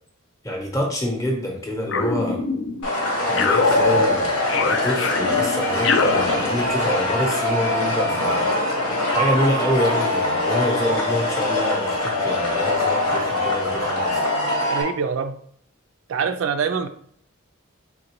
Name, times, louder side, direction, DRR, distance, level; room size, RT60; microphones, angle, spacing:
voice 1, 0.4-2.4 3.3-8.4 9.1-14.2, left 1 dB, 15° left, 0.7 m, -26 dB
sound 1, 1.9-2.9 3.4-7.0, left 3 dB, 65° left, 0.4 m, -23 dB
sound 2, 2.8-14.8, left 1 dB, 90° left, 1.3 m, -23 dB
voice 2, 14.7-15.4 16.1-16.9, right 6 dB, 70° right, 0.3 m, -24 dB
3.7 x 3.5 x 3.0 m
head